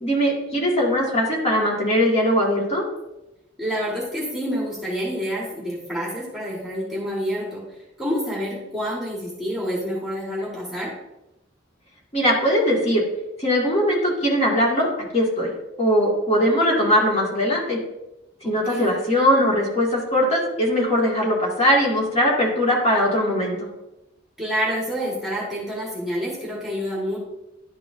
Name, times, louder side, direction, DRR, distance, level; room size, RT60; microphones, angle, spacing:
voice 1, 0.0-2.8 12.1-13.0 13.4-15.5 15.8-17.8 18.4-23.7, equal, 35° left, -4 dB, 2.0 m, -20 dB
voice 2, 3.6-7.7 8.0-10.9 18.4-19.0 24.4-27.2, equal, ahead, -5 dB, 1.4 m, -28 dB
11.0 x 4.7 x 2.6 m, 0.92 s
head